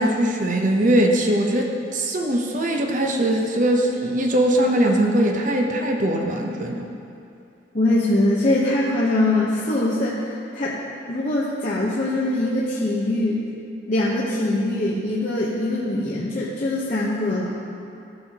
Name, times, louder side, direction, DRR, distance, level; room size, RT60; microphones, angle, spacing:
voice 1, 0.0-6.9, right 1 dB, 45° right, 2 dB, 0.7 m, -21 dB
voice 2, 7.7-10.2 10.5-10.8 11.1-13.5 13.9-17.6, left 1 dB, 45° left, -7 dB, 0.9 m, -22 dB
14.5 x 6.3 x 2.9 m, 2.6 s
head